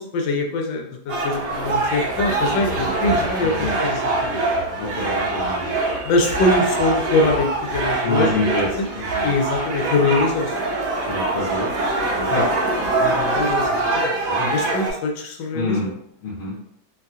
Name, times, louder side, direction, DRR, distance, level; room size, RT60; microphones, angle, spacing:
voice 1, 0.0-4.5 6.0-8.3 8.8-8.9 9.2-10.6 13.0-14.1 14.5-15.9, left 2 dB, 75° left, 2 dB, 1.2 m, -23 dB
sound 1, 1.1-14.9, right 2 dB, 65° right, 0.8 m, -23 dB
voice 2, 4.8-5.7 8.0-8.7 9.1-9.3 11.1-11.7 12.2-12.5 14.3-14.5 15.5-15.9 16.2-16.5, left 2 dB, 55° left, -8 dB, 1.0 m, -25 dB
3.2 x 2.7 x 2.3 m, 0.71 s
omnidirectional pair, 2.1 m